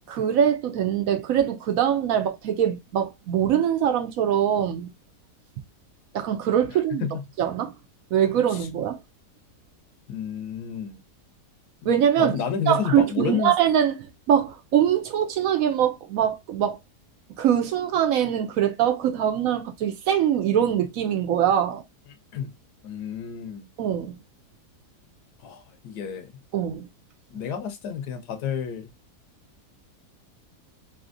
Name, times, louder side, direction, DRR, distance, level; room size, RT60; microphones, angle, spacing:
voice 1, 0.1-4.9 6.1-7.1 7.4-7.7 8.1-9.0 11.8-12.4 12.7-13.9 14.3-16.8 17.4-21.8 23.8-24.1 26.5-26.9, right 9 dB, 70° right, 0.9 m, -23 dB
voice 2, 6.7-7.2 8.5-8.7 10.1-11.0 12.2-13.5 22.3-22.5 22.8-23.7 25.4-26.3 27.3-28.9, left 7 dB, 80° left, 1.2 m, -30 dB
3.3 x 2.7 x 2.5 m
omnidirectional pair, 1.8 m